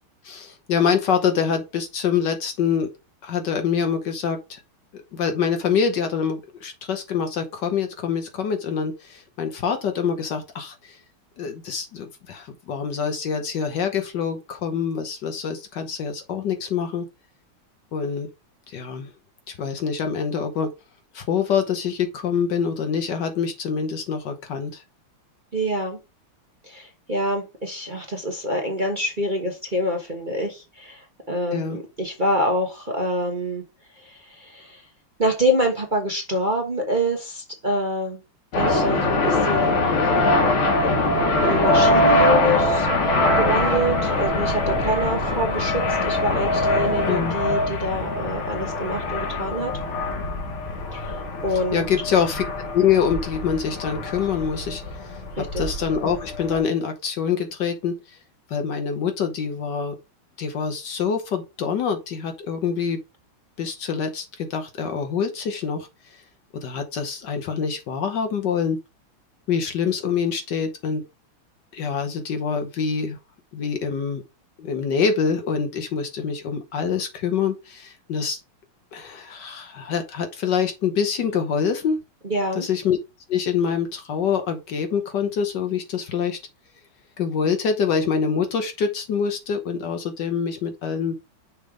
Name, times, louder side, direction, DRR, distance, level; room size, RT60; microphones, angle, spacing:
voice 1, 0.2-2.9 3.2-4.6 4.9-11.0 11.4-17.1 17.9-18.3 18.7-19.1 19.5-20.7 21.1-24.8 31.5-31.8 47.1-47.4 51.5-52.4 52.7-58.2 58.5-59.9 60.4-63.0 63.6-66.2 66.5-68.8 69.5-71.0 71.7-73.2 73.5-74.2 74.6-78.4 78.9-82.0 82.5-83.0 83.3-86.4 87.2-91.2, left 6 dB, 60° left, 1.4 m, -25 dB
voice 2, 25.5-26.0 26.6-33.6 33.9-34.9 35.2-38.2 38.5-40.4 40.8-49.7 50.9-51.9 55.4-55.6 82.2-82.7, equal, 30° right, 1.1 m, -26 dB
sound 1, 38.5-56.6, left 2 dB, 80° left, 2.5 m, -23 dB
6.6 x 3.4 x 4.8 m
omnidirectional pair, 2.3 m